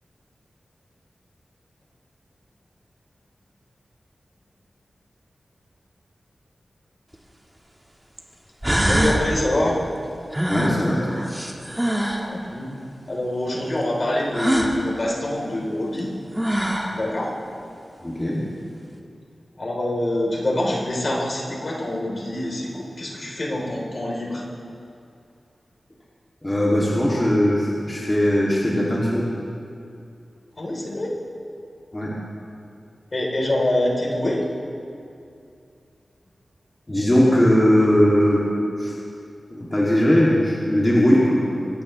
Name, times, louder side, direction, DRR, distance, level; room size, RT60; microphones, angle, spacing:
sound 1, 7.1-7.2 8.2-8.3 8.6-9.3 10.3-12.3 14.3-14.8 16.0-16.1 16.3-17.0, equal, 10° right, 1.8 m, -23 dB
voice 1, 8.8-9.8 12.3-12.7 13.1-16.1 16.9-17.3 19.6-24.4 30.6-31.1 33.1-34.4, left 1 dB, 45° left, -3 dB, 3.9 m, -25 dB
voice 2, 10.5-11.2 18.0-18.4 26.4-29.3 31.9-32.1 36.9-38.4 38.8-39.0 39.5-41.4, equal, 20° left, -7 dB, 2.8 m, -19 dB
24.5 x 17.5 x 3.3 m, 2.6 s
wide cardioid pair, 100°, 0 cm